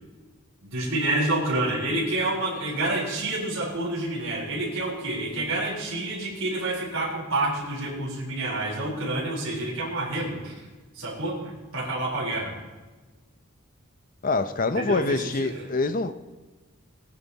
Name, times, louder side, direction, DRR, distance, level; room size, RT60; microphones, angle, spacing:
voice 1, 0.6-10.6 10.9-12.5 14.8-15.6, right 2 dB, 70° right, -5 dB, 4.1 m, -28 dB
voice 2, 14.2-16.1, left 3 dB, 40° left, 11 dB, 0.7 m, -25 dB
18.5 x 10.0 x 4.1 m, 1.3 s
head